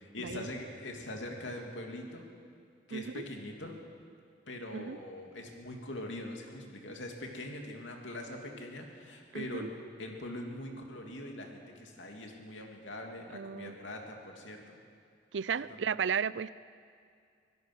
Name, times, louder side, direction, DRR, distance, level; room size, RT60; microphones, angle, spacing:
voice 1, 0.0-2.3 2.9-3.8 4.5-9.7 10.0-14.8 15.7-15.9, left 1 dB, 90° left, 2 dB, 2.9 m, -42 dB
voice 2, 2.9-3.2 4.7-5.0 9.3-9.7 13.3-13.7 15.3-16.5, right 7 dB, 75° right, 18 dB, 0.5 m, -34 dB
24.5 x 17.0 x 6.3 m, 2.3 s
head